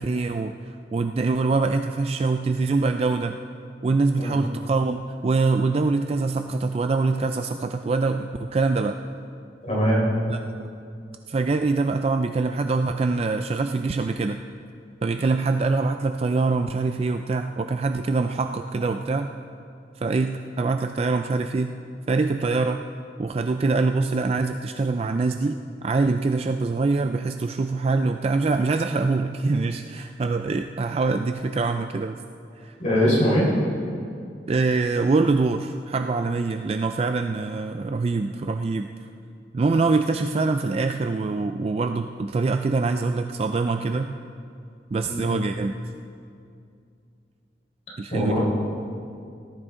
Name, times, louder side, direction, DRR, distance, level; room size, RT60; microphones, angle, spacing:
voice 1, 0.0-3.4 3.8-9.0 10.3-10.4 11.3-14.4 15.0-19.3 20.0-21.7 22.1-22.8 23.2-32.2 32.6-32.7 34.5-38.9 39.5-44.1 44.9-45.7 48.0-48.4, right 3 dB, 35° right, 7 dB, 0.3 m, -24 dB
voice 2, 9.6-10.0 32.8-33.5 45.0-45.3 48.1-48.4, equal, 40° left, -5 dB, 4.1 m, -21 dB
18.0 x 12.5 x 3.7 m, 2.4 s
head